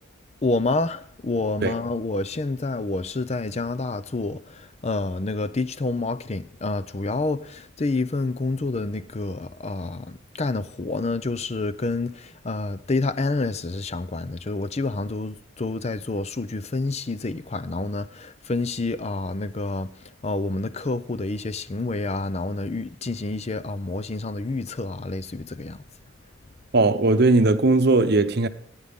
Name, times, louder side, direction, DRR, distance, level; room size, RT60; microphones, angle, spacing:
voice 1, 0.4-19.9 20.2-25.8, left 3 dB, 30° left, 0.5 m, -28 dB
voice 2, 26.7-28.5, right 2 dB, 50° right, 0.9 m, -18 dB
17.5 x 9.7 x 3.6 m
head